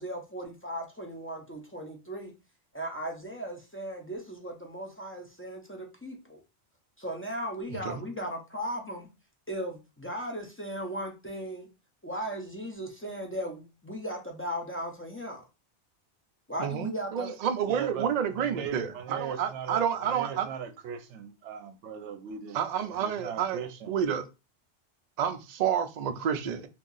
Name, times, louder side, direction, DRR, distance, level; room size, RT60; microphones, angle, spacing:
voice 1, 0.0-2.3 2.7-6.4 7.0-9.1 9.5-11.7 12.0-15.4 16.5-17.4, equal, 20° left, 0.3 m, -37 dB
voice 2, 16.6-20.5 22.5-23.6 23.9-24.3 25.2-26.7, right 8 dB, 60° right, 0.4 m, -29 dB
voice 3, 17.6-24.0, right 7 dB, 85° right, 0.9 m, -39 dB
2.7 x 2.3 x 3.8 m
omnidirectional pair, 1.2 m